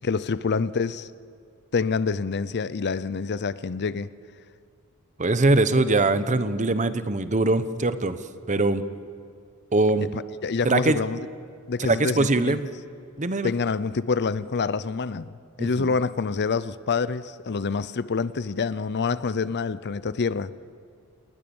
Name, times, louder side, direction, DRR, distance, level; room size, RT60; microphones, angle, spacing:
voice 1, 0.0-1.1 1.7-4.1 10.1-11.2 11.7-12.6 13.4-20.5, left 4 dB, 50° left, 0.6 m, -27 dB
voice 2, 5.2-8.2 8.5-8.8 9.7-10.1 10.6-11.0 11.8-12.7 13.2-13.5 15.6-15.9, right 2 dB, 35° right, 0.9 m, -22 dB
28.5 x 19.0 x 7.1 m
head